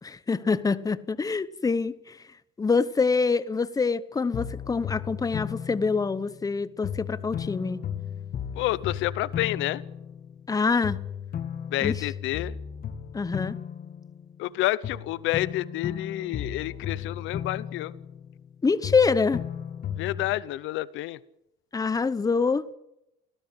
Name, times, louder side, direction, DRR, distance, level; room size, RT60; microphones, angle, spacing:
voice 1, 0.0-2.1 2.6-7.8 10.5-11.0 11.8-12.0 13.1-13.5 18.6-19.4 21.7-22.7, left 4 dB, 20° left, 1.0 m, -25 dB
sound 1, 4.3-6.5 6.8-10.5 10.8-14.5 14.8-18.5 18.8-20.4, left 8 dB, 50° left, 2.2 m, -35 dB
voice 2, 8.6-9.8 11.7-12.5 14.4-17.9 20.0-21.2, left 16 dB, 75° left, 0.9 m, -29 dB
24.5 x 17.0 x 8.0 m
cardioid pair, 125°, 20 cm